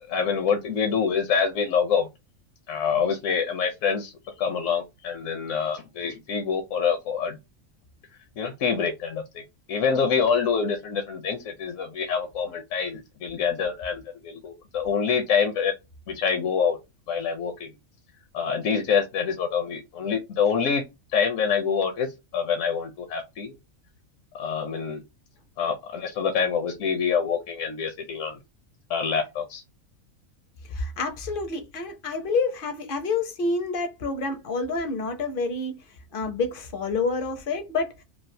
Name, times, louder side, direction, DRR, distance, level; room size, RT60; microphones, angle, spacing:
voice 1, 0.0-2.1 2.7-4.1 4.4-7.4 8.4-9.4 9.7-15.8 16.1-16.8 17.1-17.7 18.3-20.8 21.1-23.5 24.3-25.0 25.6-28.4 28.9-29.6, left 6 dB, 70° left, 0.9 m, -26 dB
voice 2, 30.7-35.8 36.1-38.0, left 3 dB, 55° left, 0.6 m, -28 dB
3.2 x 2.4 x 2.6 m
omnidirectional pair, 1.4 m